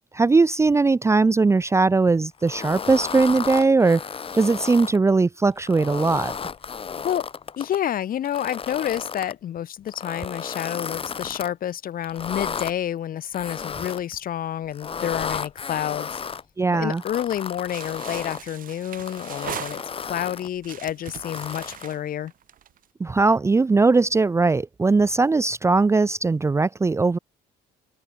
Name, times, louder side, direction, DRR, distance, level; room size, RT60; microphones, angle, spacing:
voice 1, 0.1-4.0 4.3-6.3 16.6-17.0 23.0-27.2, right 3 dB, 15° right, 0.6 m, -19 dB
sound 1, 2.4-5.0 5.6-7.8 8.2-9.3 9.9-11.5 12.0-12.7 13.3-14.2 14.7-16.4 16.9-18.4 19.0-20.5 21.1-21.9, left 6 dB, 35° left, 2.3 m, -33 dB
voice 2, 7.6-16.2 16.7-22.3, left 10 dB, 55° left, 6.4 m, -29 dB
sound 2, 17.7-20.2 20.6-22.8, right 10 dB, 55° right, 4.2 m, -39 dB
open air
cardioid pair, 110°, 17 cm